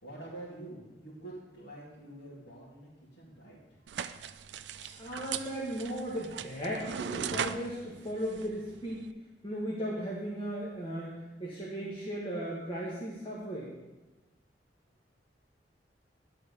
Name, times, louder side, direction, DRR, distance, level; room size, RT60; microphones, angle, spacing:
voice 1, 0.0-2.9 3.2-3.6, right 2 dB, 70° left, -9 dB, 2.2 m, -46 dB
sound 1, 3.9-9.1, right 8 dB, 75° right, 0.4 m, -39 dB
voice 2, 4.9-9.0 9.4-13.7, equal, 30° left, -5 dB, 1.5 m, -36 dB
10.5 x 4.3 x 6.7 m, 1.2 s
head